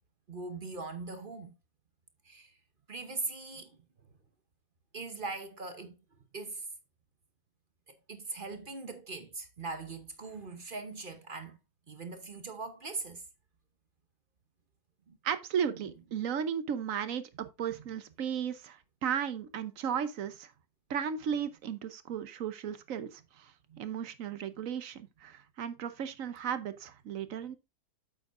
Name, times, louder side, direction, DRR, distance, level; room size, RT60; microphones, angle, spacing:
voice 1, 0.3-1.5 2.2-2.5 2.9-3.7 4.9-6.0 6.3-6.6 8.1-11.6 11.9-13.2 15.1-15.2 23.7-23.8, right 3 dB, 40° right, 0.9 m, -40 dB
voice 2, 15.2-20.5 20.9-23.5 23.8-27.6, right 8 dB, 60° right, 1.1 m, -35 dB
8.7 x 7.6 x 2.5 m
omnidirectional pair, 1.7 m